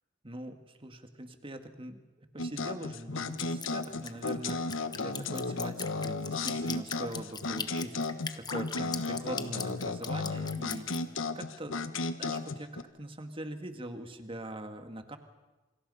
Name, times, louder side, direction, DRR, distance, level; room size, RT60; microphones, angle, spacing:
voice 1, 0.2-11.0 11.3-11.8 12.2-15.2, right 1 dB, 25° right, 7 dB, 2.0 m, -42 dB
sound 1, 2.4-12.8, left 3 dB, 80° left, 1.2 m, -34 dB
Drip, 3.4-11.0, left 5 dB, 20° left, 1.1 m, -39 dB
28.0 x 26.0 x 5.6 m, 1.2 s
head